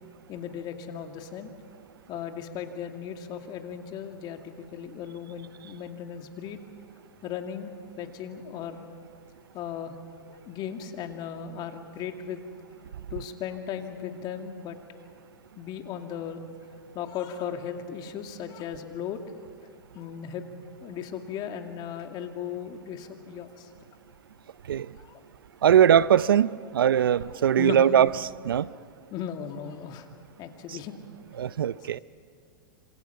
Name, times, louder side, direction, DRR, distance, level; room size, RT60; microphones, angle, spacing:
voice 1, 0.3-1.5 2.1-6.6 7.2-7.7 8.0-8.9 9.5-9.9 10.3-12.4 13.1-14.8 15.6-16.4 16.9-19.2 19.9-20.5 20.8-23.7 25.0-25.2 27.5-27.8 29.1-30.1 30.4-30.9, left 8 dB, 40° left, 5 dB, 2.4 m, -36 dB
voice 2, 25.6-28.7 30.7-30.8 31.4-32.0, right 9 dB, 85° right, 19 dB, 0.6 m, -21 dB
27.0 x 26.0 x 5.8 m, 2.2 s
hypercardioid pair, 115°, 11 cm